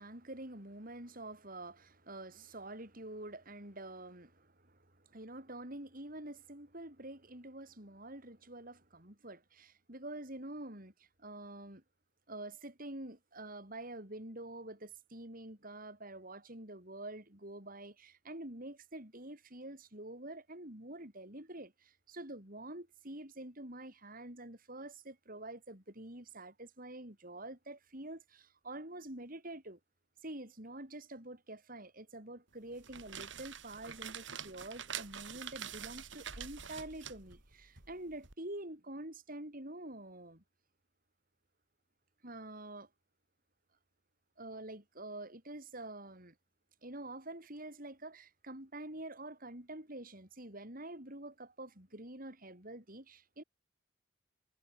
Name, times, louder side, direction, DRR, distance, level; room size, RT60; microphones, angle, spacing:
voice 1, 0.0-11.8 12.3-29.8 30.2-40.4 42.2-42.9 44.4-46.4 46.8-53.4, right 1 dB, 45° right, 6.8 m, -47 dB
sound 1, 32.7-38.3, right 8 dB, 70° right, 3.5 m, -46 dB
head